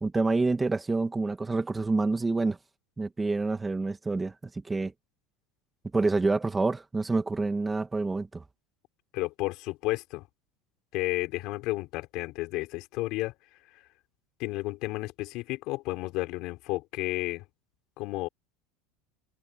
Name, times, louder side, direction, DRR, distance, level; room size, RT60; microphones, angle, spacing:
voice 1, 0.0-2.6 3.0-4.9 5.9-8.4, right 3 dB, 10° right, 2.2 m, -27 dB
voice 2, 9.1-10.3 10.9-13.3 14.4-17.4 18.0-18.3, left 20 dB, 55° left, 4.3 m, -32 dB
open air
supercardioid pair, 145°, 0 cm